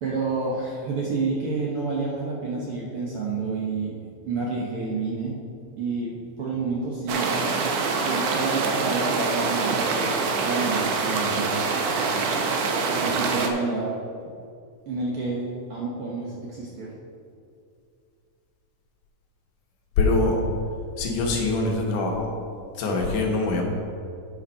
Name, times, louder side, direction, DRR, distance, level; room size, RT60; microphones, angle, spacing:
voice 1, 0.0-5.3 5.8-10.1 10.4-11.7 12.7-13.9 14.9-16.9, right 3 dB, 65° right, -4 dB, 1.5 m, -29 dB
sound 1, 7.1-13.5, right 4 dB, 85° right, 1.3 m, -25 dB
voice 2, 20.0-20.4 21.0-22.3 22.7-23.6, left 3 dB, 80° left, 0 dB, 2.7 m, -23 dB
8.6 x 5.7 x 5.5 m, 2.4 s
omnidirectional pair, 3.6 m